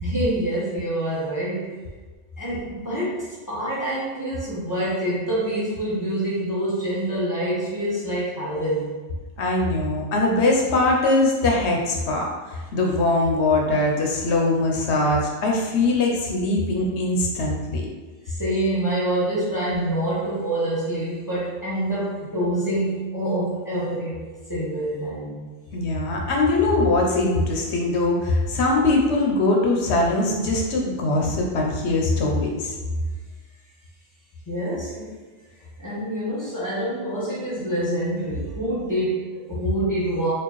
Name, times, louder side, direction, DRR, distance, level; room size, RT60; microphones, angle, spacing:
voice 1, 0.0-1.8 2.4-8.9 18.2-24.2 24.5-25.5 34.5-35.1 35.8-40.3, right 1 dB, 15° left, -8 dB, 1.0 m, -26 dB
voice 2, 9.4-17.9 25.7-32.7, left 2 dB, 70° left, 0 dB, 0.9 m, -21 dB
4.3 x 2.4 x 3.0 m, 1.3 s
omnidirectional pair, 1.2 m